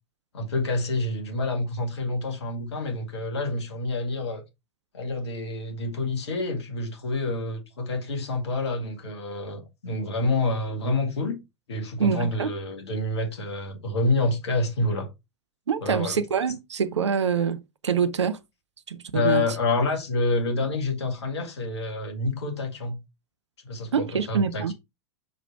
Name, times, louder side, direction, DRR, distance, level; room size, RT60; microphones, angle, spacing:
voice 1, 0.3-4.4 4.9-11.4 11.7-15.1 15.8-16.2 19.1-23.0 23.6-24.7, left 2 dB, 70° left, 1.9 m, -28 dB
voice 2, 12.0-12.5 15.7-18.4 18.9-19.4 23.9-24.7, right 6 dB, 75° right, 0.6 m, -25 dB
5.3 x 5.0 x 4.4 m
figure-of-eight pair, 90°, 15 cm